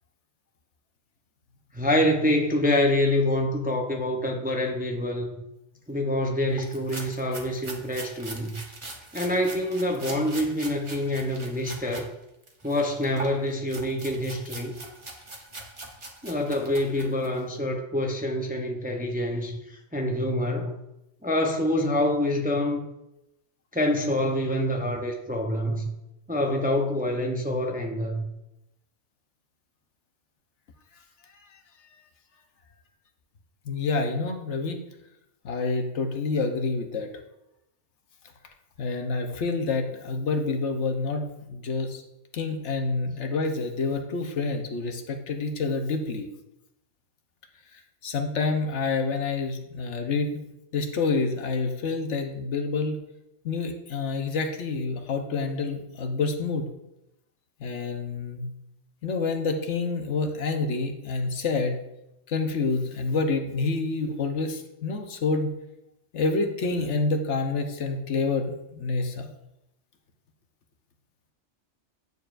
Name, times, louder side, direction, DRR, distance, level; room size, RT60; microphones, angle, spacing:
voice 1, 1.7-5.3 5.9-8.6 9.1-12.1 12.6-14.8 16.2-20.7 21.2-22.8 23.7-25.9 26.3-28.3, left 1 dB, 10° right, 2 dB, 0.6 m, -26 dB
sound 1, 6.6-12.1 12.4-17.4, right 2 dB, 25° right, 1.0 m, -42 dB
voice 2, 33.7-34.8 35.4-37.1 38.8-42.0 42.3-46.3 48.0-50.4 50.7-53.0 53.4-56.7 57.6-58.5 59.0-61.8 62.3-65.5 66.1-69.3, left 3 dB, 70° left, 4 dB, 1.2 m, -28 dB
9.6 x 6.8 x 2.5 m, 0.87 s
omnidirectional pair, 1.2 m